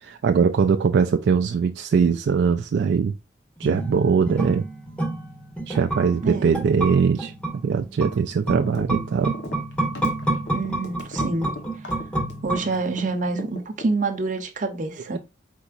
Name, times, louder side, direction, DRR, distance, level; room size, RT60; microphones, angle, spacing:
voice 1, 0.0-3.1 3.6-4.7 5.7-7.3 7.6-9.4 15.1-15.2, right 6 dB, 65° right, 0.3 m, -21 dB
sound 1, 3.6-13.1 13.4-13.5, right 2 dB, 5° left, 0.9 m, -29 dB
voice 2, 6.2-6.6 10.5-11.5 12.4-15.2, right 3 dB, 45° right, 0.8 m, -27 dB
sound 2, 8.7-9.0 9.2-13.0 13.4-14.3, left 2 dB, 65° left, 1.0 m, -37 dB
4.5 x 4.0 x 2.5 m
head